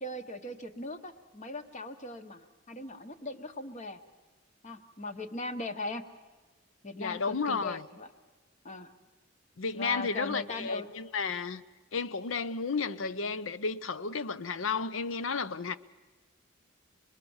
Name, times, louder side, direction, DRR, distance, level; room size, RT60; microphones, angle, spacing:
voice 1, 0.0-4.0 4.6-6.0 6.8-8.1 8.6-8.9 9.7-10.9, left 2 dB, 35° left, 1.1 m, -39 dB
voice 2, 7.0-7.8 9.6-11.6 11.9-15.8, left 4 dB, 80° left, 0.7 m, -32 dB
26.0 x 21.0 x 7.2 m
head